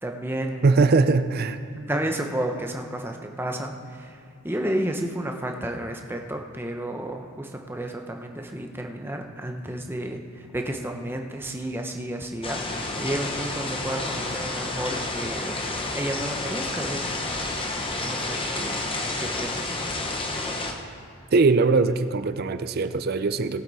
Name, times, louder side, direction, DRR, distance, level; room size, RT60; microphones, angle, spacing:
voice 1, 0.0-0.9 1.8-17.2 18.0-18.9 19.2-19.7, right 1 dB, 10° right, 3 dB, 0.8 m, -32 dB
voice 2, 0.6-1.6 21.3-23.6, right 3 dB, 45° right, 11 dB, 0.4 m, -21 dB
sound 1, 12.4-20.7, left 2 dB, 25° left, 1.0 m, -30 dB
19.0 x 8.2 x 4.1 m, 2.5 s
head